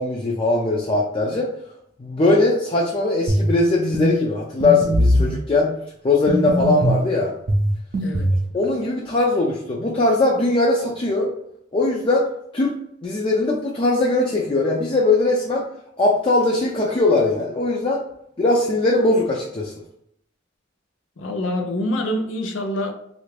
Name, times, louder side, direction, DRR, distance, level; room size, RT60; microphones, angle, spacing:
voice 1, 0.0-1.5 2.0-5.7 6.0-7.3 8.5-11.3 11.7-12.3 12.5-12.7 13.0-15.7 16.0-18.0 18.4-19.7, left 2 dB, 30° left, -2 dB, 0.4 m, -20 dB
sound 1, 3.3-3.5 3.9-4.1 4.6-5.4 6.3-7.0 7.5-8.4, equal, 50° right, 0.5 m, -20 dB
voice 2, 21.2-22.9, left 1 dB, 85° left, 5 dB, 0.6 m, -25 dB
3.2 x 2.5 x 3.2 m, 0.72 s
head